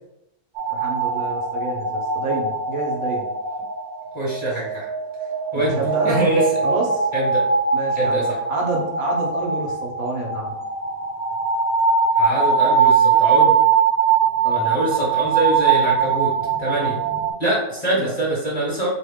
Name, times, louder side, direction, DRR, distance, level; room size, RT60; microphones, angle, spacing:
sound 1, 0.6-17.3, right 5 dB, 45° right, 0.8 m, -21 dB
voice 1, 0.7-3.3 5.5-6.2 6.6-7.1 7.7-8.2 8.5-10.5 14.4-14.7 18.0-18.1, right 3 dB, 65° right, -1 dB, 1.1 m, -28 dB
voice 2, 4.1-4.9 5.5-6.6 7.1-7.4 7.9-8.4 12.2-13.5 14.5-16.3 16.6-17.0 17.4-18.9, right 2 dB, 30° left, -4 dB, 1.1 m, -24 dB
4.3 x 2.7 x 3.5 m, 0.87 s
omnidirectional pair, 1.7 m